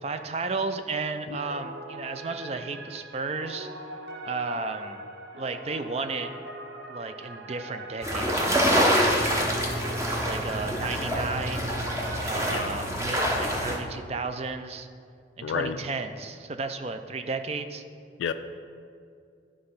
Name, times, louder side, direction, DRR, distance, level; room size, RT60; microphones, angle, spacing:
voice 1, 0.0-3.7 4.2-5.1 5.4-6.3 6.9-8.8 10.2-11.8 12.2-14.9 15.4-17.8, right 4 dB, 35° right, 8 dB, 0.4 m, -33 dB
sound 1, 1.4-12.7, right 1 dB, 65° right, 0.9 m, -41 dB
sound 2, 8.0-13.8, equal, 15° right, 0.8 m, -26 dB
voice 2, 15.4-15.8 18.2-18.3, left 7 dB, 85° left, 8 dB, 0.3 m, -30 dB
11.0 x 3.7 x 5.6 m, 2.4 s
head